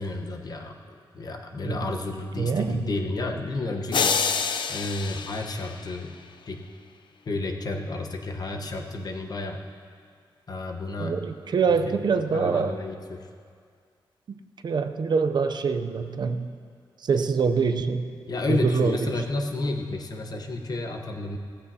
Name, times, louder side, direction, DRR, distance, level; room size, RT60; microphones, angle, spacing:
voice 1, 0.0-4.4 4.7-6.2 6.5-6.7 7.2-9.6 10.5-11.2 11.7-13.3 18.3-21.4, left 2 dB, 50° left, 3 dB, 1.1 m, -31 dB
voice 2, 2.4-2.9 11.0-12.8 14.3-16.6 17.0-18.2 18.5-19.1, right 5 dB, 55° right, 8 dB, 0.6 m, -25 dB
sound 1, 3.9-6.2, left 6 dB, 65° left, 0.6 m, -27 dB
17.0 x 15.0 x 2.8 m, 2.2 s
wide cardioid pair, 135°, 9 cm